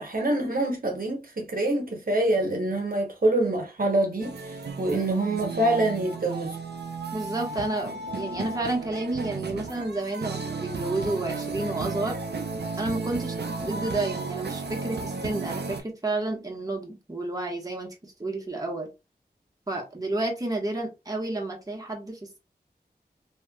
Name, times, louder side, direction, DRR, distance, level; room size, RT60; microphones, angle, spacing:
voice 1, 0.0-6.6, right 1 dB, 60° right, 0.9 m, -26 dB
sound 1, 4.2-15.8, right 4 dB, 85° right, 0.5 m, -34 dB
voice 2, 7.1-12.2 12.8-18.9 19.7-22.4, right 2 dB, 20° right, 1.1 m, -31 dB
3.0 x 2.8 x 2.2 m
wide cardioid pair, 45°, 17 cm